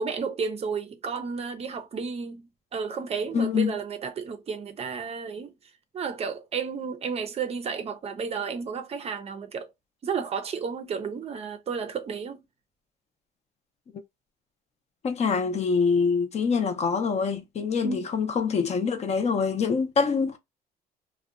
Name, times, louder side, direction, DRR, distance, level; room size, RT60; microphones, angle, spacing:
voice 1, 0.0-5.5 5.9-9.7 10.0-12.4 17.8-18.0, right 5 dB, 35° right, 0.5 m, -32 dB
voice 2, 3.3-3.8 15.0-20.4, left 5 dB, 40° left, 0.6 m, -25 dB
2.6 x 2.1 x 2.4 m
cardioid pair, 110°, 17 cm